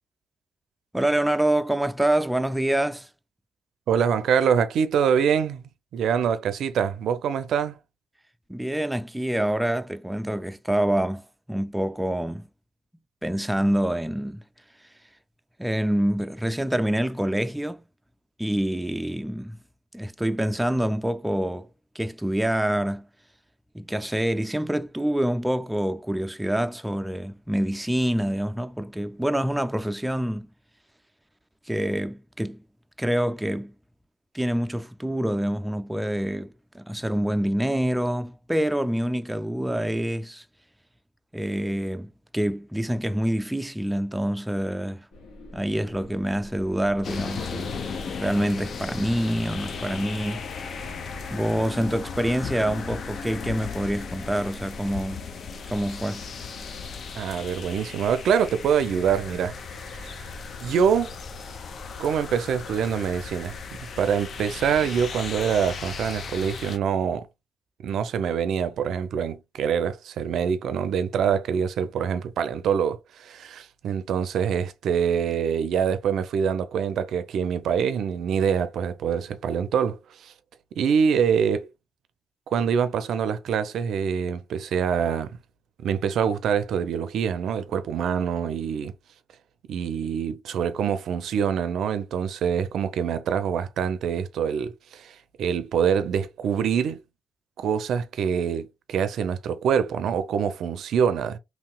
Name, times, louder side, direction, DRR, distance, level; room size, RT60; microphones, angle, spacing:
voice 1, 0.9-3.1 8.5-12.5 13.2-14.4 15.6-17.8 18.4-19.6 19.9-21.7 22.0-23.1 23.7-30.5 31.7-32.6 33.0-33.7 34.3-40.4 41.3-45.1 45.5-47.8 48.1-50.9 51.3-55.2 55.7-56.2, right 1 dB, 5° right, 0.3 m, -26 dB
voice 2, 3.9-7.8 57.2-59.6 59.9-60.1 60.6-61.1 62.0-63.6 64.0-67.3 67.8-80.3 80.8-81.7 82.5-85.3 85.8-88.9 89.7-97.0 97.6-101.4, right 7 dB, 75° right, 0.4 m, -25 dB
sound 1, 45.1-64.8, equal, 80° left, 1.4 m, -46 dB
sound 2, 47.0-66.8, left 6 dB, 60° left, 0.5 m, -36 dB
3.0 x 2.9 x 2.2 m
supercardioid pair, 65°, 0 cm